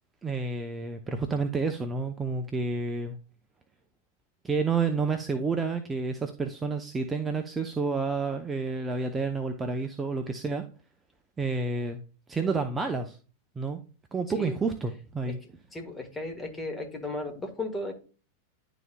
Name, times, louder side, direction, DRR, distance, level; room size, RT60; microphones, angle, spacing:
voice 1, 0.2-3.2 4.4-10.6 11.4-12.0 12.3-13.2 13.6-13.8 14.1-15.4, right 4 dB, 15° right, 5 dB, 0.7 m, -29 dB
voice 2, 15.7-17.9, left 2 dB, 10° left, 3 dB, 1.5 m, -35 dB
11.0 x 4.1 x 2.3 m, 0.36 s
figure-of-eight pair, 90°, 0 cm